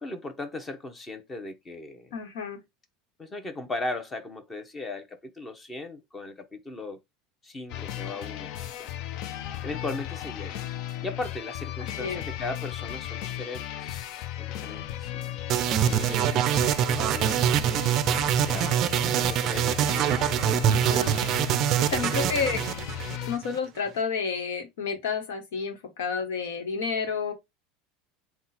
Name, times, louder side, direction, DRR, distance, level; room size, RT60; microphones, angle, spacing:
voice 1, 0.0-2.1 3.2-7.0 7.4-8.5 8.8-8.9 9.6-10.6 11.0-14.0 14.4-18.8 19.1-20.8 22.1-22.6, left 2 dB, 20° left, 0.9 m, -38 dB
voice 2, 2.1-2.6 12.0-12.2 20.7-21.1 21.8-22.6 23.3-27.3, left 5 dB, 85° left, 1.2 m, -30 dB
sound 1, 7.7-23.4, left 12 dB, 60° left, 0.5 m, -36 dB
sound 2, 15.5-23.6, right 10 dB, 50° right, 0.4 m, -24 dB
3.8 x 2.3 x 4.1 m
supercardioid pair, 115°, 0 cm